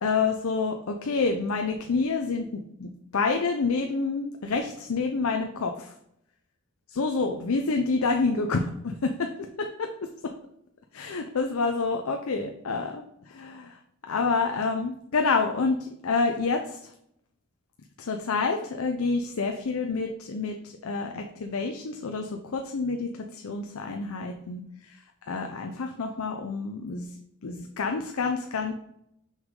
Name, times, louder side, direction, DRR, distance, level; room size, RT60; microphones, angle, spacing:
voice 1, 0.0-5.9 6.9-10.1 10.9-13.8 14.1-16.9 18.0-28.7, left 4 dB, 75° left, 4 dB, 0.6 m, -28 dB
6.1 x 5.6 x 3.7 m, 0.75 s
head